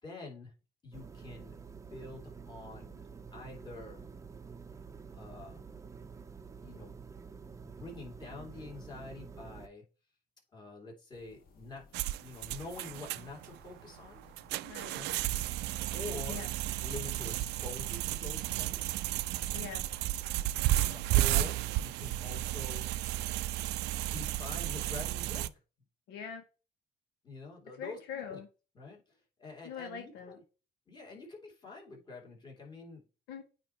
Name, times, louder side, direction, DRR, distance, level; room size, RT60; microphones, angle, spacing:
voice 1, 0.0-0.5 0.8-3.0 3.3-4.1 5.1-5.6 6.6-6.9 7.6-9.8 10.5-11.9 12.2-14.2 14.9-15.1 15.9-16.4 16.8-19.0 19.5-19.6 20.6-22.9 24.0-25.5 27.2-28.4 28.7-30.4 30.9-33.0, left 3 dB, 25° left, -2 dB, 3.0 m, -46 dB
sound 1, 0.9-9.7, right 5 dB, 20° right, 0.6 m, -49 dB
sound 2, 11.1-25.0, left 4 dB, 60° left, 1.7 m, -60 dB
sound 3, 11.9-25.5, right 16 dB, 85° right, 0.4 m, -33 dB
voice 2, 14.6-15.0 16.3-16.5 19.5-19.8 26.1-26.4 27.8-28.5 29.6-30.4 33.3-33.4, left 7 dB, 90° left, 5 dB, 1.4 m, -42 dB
9.0 x 3.1 x 4.5 m, 0.33 s
cardioid pair, 110°, 17 cm